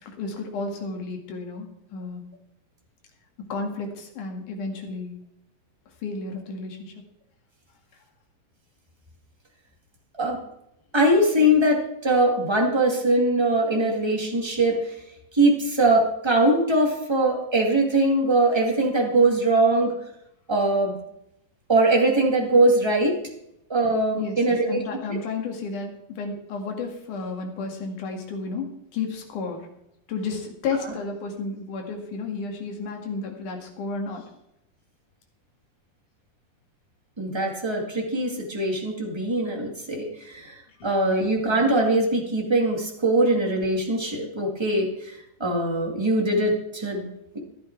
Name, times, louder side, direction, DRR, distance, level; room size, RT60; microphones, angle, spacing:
voice 1, 0.0-2.3 3.5-5.2 6.0-6.9 24.2-29.7 30.1-34.2 41.0-41.2, left 4 dB, 60° left, 2 dB, 3.3 m, -32 dB
voice 2, 10.9-14.8 15.3-19.9 20.5-20.9 21.7-23.2 23.7-24.8 25.1-25.2 37.2-40.5 40.8-45.1 45.4-47.4, right 1 dB, 15° right, 0 dB, 0.9 m, -22 dB
14.5 x 11.0 x 4.7 m, 0.80 s
omnidirectional pair, 4.3 m